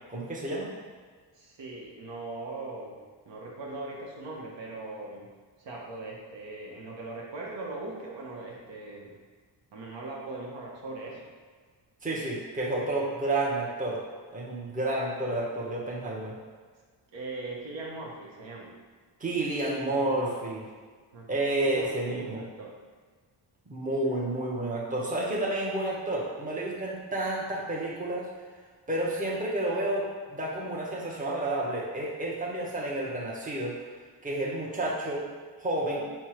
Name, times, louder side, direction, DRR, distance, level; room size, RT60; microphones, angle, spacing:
voice 1, 0.1-0.7 12.0-14.0 14.3-16.4 19.2-20.7 21.3-22.5 23.7-28.3 28.9-33.8 34.2-35.2 35.6-36.1, right 1 dB, 15° right, -4 dB, 0.9 m, -30 dB
voice 2, 1.3-5.3 5.6-9.2 9.7-11.3 17.1-18.8 19.8-20.3 21.1-21.3 21.6-22.8 24.1-24.2, right 2 dB, 65° right, -3 dB, 1.0 m, -40 dB
4.4 x 2.3 x 4.4 m, 1.5 s
cardioid pair, 80°, 47 cm